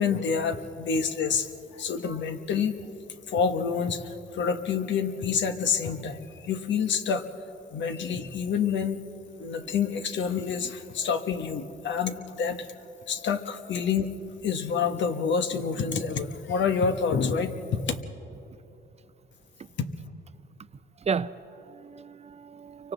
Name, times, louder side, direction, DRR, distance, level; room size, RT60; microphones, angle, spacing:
voice 1, 0.0-2.8 3.3-7.2 7.7-9.0 9.4-12.7 13.1-14.1 14.4-18.0, left 6 dB, 65° left, 8 dB, 1.3 m, -28 dB
voice 2, 21.0-22.9, right 6 dB, 35° right, 14 dB, 0.5 m, -33 dB
29.5 x 24.5 x 4.0 m, 3.0 s
cardioid pair, 90°, 20 cm